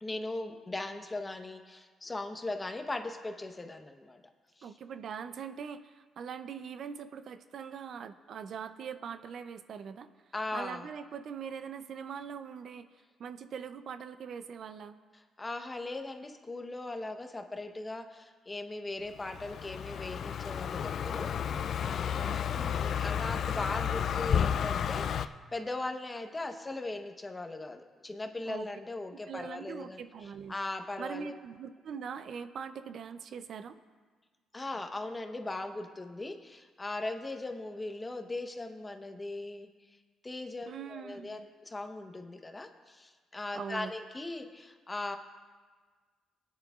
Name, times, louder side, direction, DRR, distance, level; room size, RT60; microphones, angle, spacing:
voice 1, 0.0-4.2 4.6-4.7 10.3-10.9 15.4-22.5 22.8-30.0 30.5-31.3 34.5-39.7 40.2-45.2, left 2 dB, 20° left, 5 dB, 1.0 m, -39 dB
voice 2, 4.6-10.1 10.5-15.0 22.3-23.0 28.5-28.8 29.1-30.6 31.0-33.7 40.7-41.5 43.5-43.9, right 7 dB, 60° right, 11 dB, 0.5 m, -42 dB
Car passing by, 19.2-25.3, left 8 dB, 60° left, 0.4 m, -32 dB
20.5 x 9.6 x 2.4 m, 1.5 s
cardioid pair, 90°, 0 cm